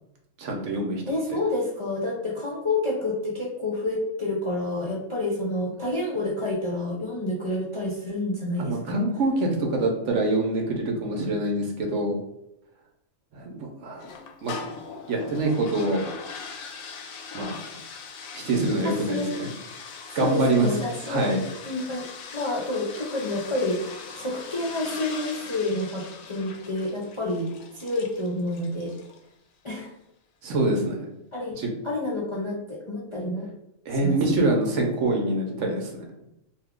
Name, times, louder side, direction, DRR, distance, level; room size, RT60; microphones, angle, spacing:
voice 1, 0.4-1.0 8.6-12.2 13.3-14.1 14.4-14.5 15.1-16.0 17.3-17.5 18.3-19.5 20.1-20.7 21.1-21.4 30.4-31.1 31.6-31.7 33.9-36.0, right 2 dB, 65° right, 1 dB, 1.0 m, -25 dB
voice 2, 1.0-9.0 18.8-19.3 20.2-21.3 21.6-22.1 22.3-27.5 27.7-28.9 29.6-30.0 31.3-31.6 31.8-33.5 34.0-34.2, left 2 dB, 50° left, -5 dB, 0.3 m, -29 dB
sound 1, 14.0-29.3, left 5 dB, 80° left, 1.0 m, -41 dB
2.7 x 2.3 x 3.6 m, 0.83 s
omnidirectional pair, 1.4 m